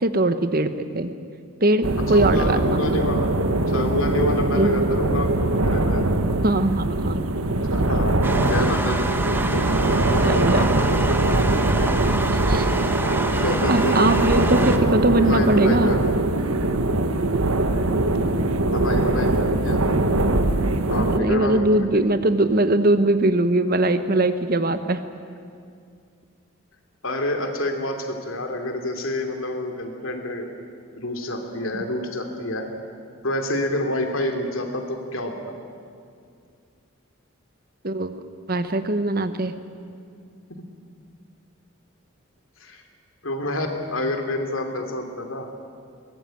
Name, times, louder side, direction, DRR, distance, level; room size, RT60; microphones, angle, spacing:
voice 1, 0.0-1.1 1.6-2.8 4.5-4.9 6.4-7.3 10.2-10.7 12.5-12.6 13.7-15.9 20.9-25.0 37.8-38.2 38.5-39.5, right 1 dB, 45° right, 10 dB, 1.1 m, -21 dB
sound 1, 1.8-21.2, right 2 dB, 90° right, 1.4 m, -22 dB
voice 2, 2.1-3.3 3.7-6.1 7.7-9.1 9.5-9.7 10.1-11.1 13.3-14.5 15.1-16.2 18.6-19.8 20.9-22.0 27.0-30.5 30.9-32.7 33.2-35.5 42.6-42.8 43.2-45.5, left 1 dB, 75° left, 4 dB, 2.9 m, -28 dB
sound 2, 8.2-14.8, right 2 dB, 10° right, 1.1 m, -28 dB
23.0 x 20.0 x 9.2 m, 2.3 s
head